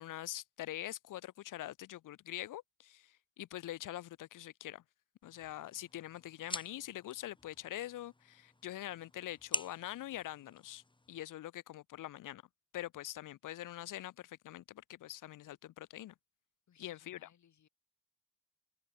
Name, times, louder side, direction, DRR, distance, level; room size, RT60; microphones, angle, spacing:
voice 1, 0.0-4.8 5.2-10.8 11.1-12.4 12.7-16.1 16.8-17.3, left 14 dB, 90° left, 1.3 m, -44 dB
sound 1, 5.2-11.2, left 2 dB, 15° left, 3.4 m, -46 dB
voice 2, 16.7-17.7, left 9 dB, 65° left, 7.9 m, -67 dB
cardioid pair, 100°, 31 cm